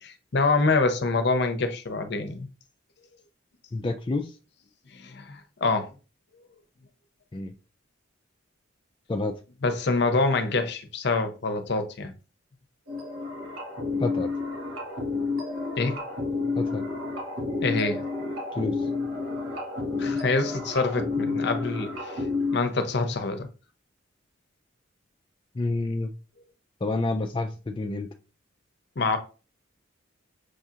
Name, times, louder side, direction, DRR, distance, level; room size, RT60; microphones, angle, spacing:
voice 1, 0.0-2.5 4.9-5.9 9.6-12.1 15.8-16.0 17.6-18.0 20.0-22.3 22.5-23.5 29.0-29.2, left 3 dB, 60° left, 0.6 m, -26 dB
voice 2, 3.7-4.3 7.3-7.5 9.1-9.3 14.0-14.3 16.6-16.8 18.6-18.7 25.6-26.1 26.8-28.1, left 2 dB, 25° left, 0.3 m, -28 dB
sound 1, 12.9-22.6, left 3 dB, 85° right, 1.3 m, -30 dB
6.2 x 2.8 x 2.4 m
head